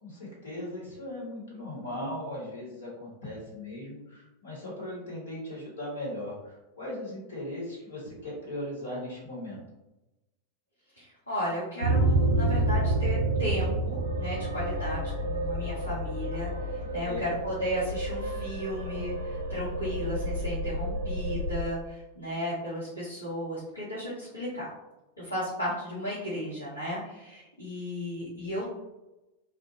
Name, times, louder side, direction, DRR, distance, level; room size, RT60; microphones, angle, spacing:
voice 1, 0.0-9.6 17.0-17.3, left 1 dB, 65° left, -5 dB, 1.2 m, -38 dB
voice 2, 11.0-24.7 25.2-28.7, equal, 85° left, -10 dB, 0.8 m, -35 dB
sound 1, 11.8-21.6, right 1 dB, 80° right, 0.4 m, -29 dB
2.5 x 2.1 x 2.7 m, 0.98 s
figure-of-eight pair, 90°, 0 cm